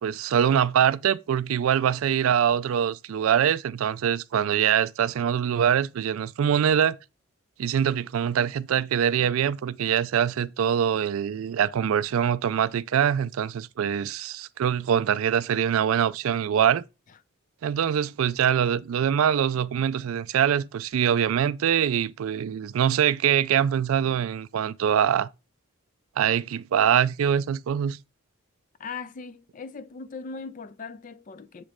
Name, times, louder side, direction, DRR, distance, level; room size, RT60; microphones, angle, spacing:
voice 1, 0.0-7.0 7.6-16.8 17.6-25.3 26.2-28.0, right 8 dB, 75° right, 0.3 m, -24 dB
voice 2, 28.8-31.6, left 4 dB, 40° left, 0.4 m, -39 dB
7.5 x 3.0 x 4.9 m
head